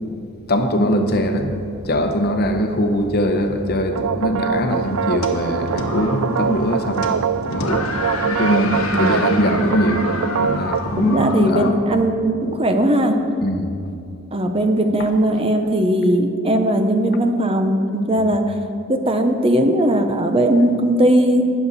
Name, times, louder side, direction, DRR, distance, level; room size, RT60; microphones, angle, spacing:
voice 1, 0.5-7.8 8.2-10.0 10.4-11.7 13.4-13.8, equal, 45° left, 5 dB, 0.9 m, -21 dB
sound 1, 3.9-10.8, right 7 dB, 70° right, 0.4 m, -24 dB
sound 2, 4.7-11.7, left 3 dB, 75° left, 1.2 m, -29 dB
voice 2, 11.0-13.2 14.3-18.5 18.9-21.5, right 1 dB, 25° right, 6 dB, 0.7 m, -18 dB
19.5 x 7.0 x 4.1 m, 2.5 s
head